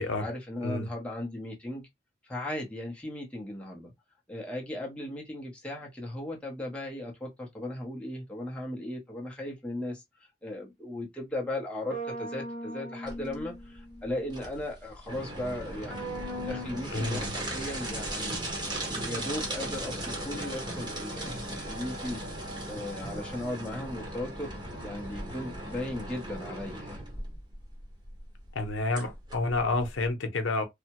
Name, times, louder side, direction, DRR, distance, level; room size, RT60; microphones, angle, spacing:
voice 1, 0.0-1.9 2.3-3.9 4.3-10.0 10.4-18.4 18.8-22.2 22.7-24.5 24.8-27.0, left 1 dB, 5° left, 0.7 m, -37 dB
sound 1, 11.9-14.3 15.9-16.7, right 1 dB, 55° right, 1.2 m, -39 dB
sound 2, 13.1-30.1, right 1 dB, 25° right, 0.9 m, -37 dB
voice 2, 16.9-17.3 28.5-30.6, left 2 dB, 85° left, 0.7 m, -29 dB
3.3 x 2.0 x 2.9 m
head